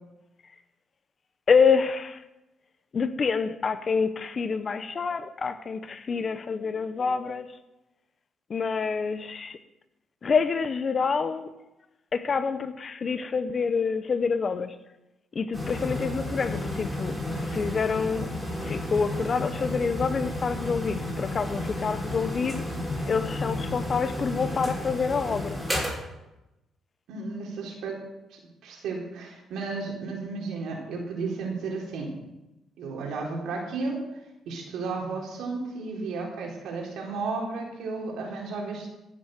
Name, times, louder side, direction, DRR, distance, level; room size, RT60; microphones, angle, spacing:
voice 1, 1.5-2.2 2.9-7.5 8.5-9.6 10.2-11.5 12.1-14.7 15.3-17.2 17.4-18.3 18.6-22.6 23.1-25.6, left 5 dB, 40° left, 11 dB, 1.0 m, -27 dB
sound 1, 15.5-25.9, left 1 dB, 5° right, 5.2 m, -32 dB
voice 2, 27.1-28.0 28.3-32.1 32.8-34.0 34.5-38.9, right 4 dB, 80° right, -1 dB, 4.1 m, -33 dB
15.5 x 7.7 x 6.7 m, 0.97 s
cardioid pair, 90°, 0 cm